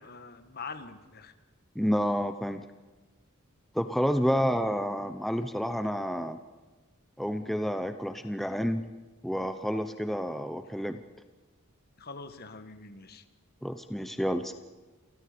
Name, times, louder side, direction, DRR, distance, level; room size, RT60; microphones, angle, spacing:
voice 1, 0.0-1.3 12.0-13.2, left 4 dB, 45° left, 10 dB, 1.5 m, -44 dB
voice 2, 1.7-2.6 3.7-6.4 7.2-8.8 9.2-11.0 13.6-14.5, equal, ahead, 8 dB, 0.8 m, -29 dB
28.5 x 24.5 x 5.2 m, 1.3 s
head